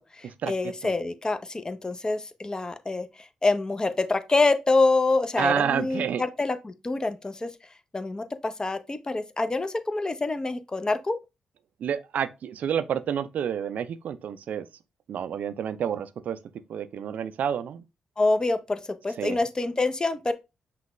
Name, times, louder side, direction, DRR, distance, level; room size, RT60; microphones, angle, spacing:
voice 1, 0.2-3.1 3.4-7.5 7.9-11.2 18.2-20.3, left 3 dB, 25° left, 0.6 m, -26 dB
voice 2, 5.4-6.2 11.8-14.7 15.1-16.4 16.7-17.8 19.2-19.4, right 8 dB, 65° right, 0.4 m, -29 dB
5.7 x 2.3 x 3.0 m
hypercardioid pair, 45°, 3 cm